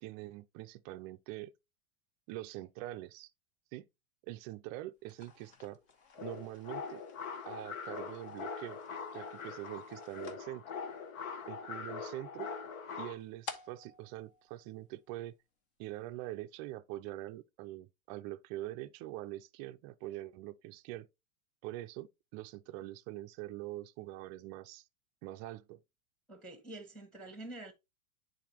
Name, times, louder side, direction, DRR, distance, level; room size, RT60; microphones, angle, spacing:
voice 1, 0.0-1.5 2.3-3.3 3.7-3.9 4.3-5.8 6.2-7.0 7.5-8.8 9.1-10.6 11.5-12.5 13.0-15.3 15.8-21.1 21.6-24.8 25.2-25.8, right 16 dB, 30° right, 0.4 m, -44 dB
sound 1, 5.0-15.4, left 5 dB, 45° left, 1.5 m, -54 dB
sound 2, 6.1-13.1, left 5 dB, 70° left, 1.4 m, -43 dB
voice 2, 26.3-27.7, right 2 dB, ahead, 1.3 m, -47 dB
10.0 x 4.2 x 3.0 m
hypercardioid pair, 130°, 42 cm